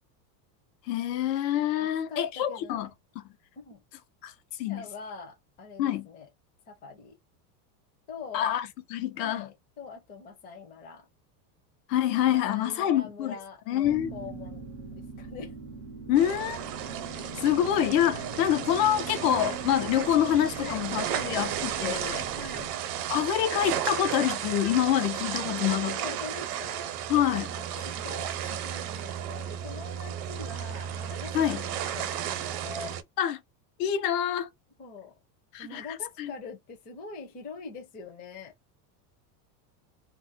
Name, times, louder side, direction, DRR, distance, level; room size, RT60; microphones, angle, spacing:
voice 1, 0.9-2.9 3.1-3.2 4.2-4.3 4.6-4.9 5.8-6.1 8.3-9.5 11.9-13.4 13.7-14.1 16.1-16.6 17.4-22.3 23.1-26.0 27.1-27.5 31.3-31.6 33.2-33.4 33.8-34.5 35.5-35.9 36.2-36.3, left 11 dB, 75° left, 0.8 m, -26 dB
voice 2, 2.1-2.9 3.6-3.8 4.7-6.3 6.7-7.2 8.1-8.5 9.1-11.0 12.3-14.6 14.9-15.6 20.5-21.4 22.3-22.7 25.7-27.0 27.4-28.3 28.6-33.0 34.8-35.1 35.6-38.5, left 5 dB, 20° left, 0.6 m, -43 dB
sound 1, 13.8-22.7, right 3 dB, 30° right, 0.5 m, -41 dB
sound 2, 16.1-33.0, right 10 dB, 70° right, 0.8 m, -34 dB
2.5 x 2.1 x 4.0 m
supercardioid pair, 170°, 49 cm